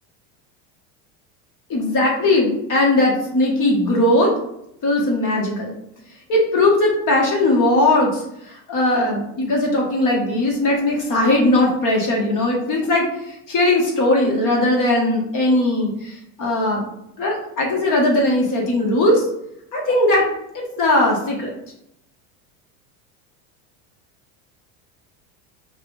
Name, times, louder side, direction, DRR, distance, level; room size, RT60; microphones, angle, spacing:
voice 1, 1.7-4.3 4.8-5.7 6.3-16.8 17.2-19.2 19.7-20.3 20.5-21.5, left 1 dB, 45° left, -1 dB, 1.4 m, -19 dB
4.6 x 2.4 x 3.3 m, 0.78 s
supercardioid pair, 105°, 44 cm